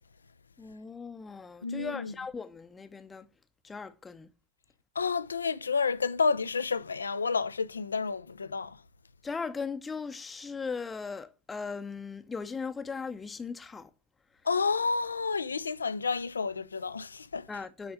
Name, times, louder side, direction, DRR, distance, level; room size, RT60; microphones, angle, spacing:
voice 1, 0.6-3.3 3.6-4.3 9.2-13.9 17.5-17.9, left 5 dB, 15° left, 0.7 m, -38 dB
voice 2, 1.6-2.1 5.0-8.8 14.4-17.5, left 5 dB, 75° left, 0.4 m, -30 dB
9.6 x 4.3 x 6.6 m
figure-of-eight pair, 90°, 0 cm